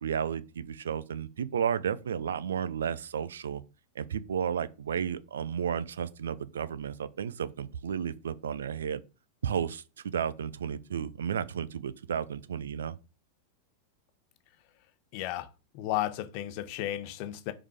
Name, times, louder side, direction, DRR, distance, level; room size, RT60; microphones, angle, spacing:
voice 1, 0.0-3.6 3.9-9.0 9.4-13.0, right 8 dB, 65° right, 0.6 m, -33 dB
voice 2, 15.1-17.5, left 13 dB, 45° left, 0.9 m, -34 dB
5.4 x 4.8 x 5.1 m
figure-of-eight pair, 90°, 0 cm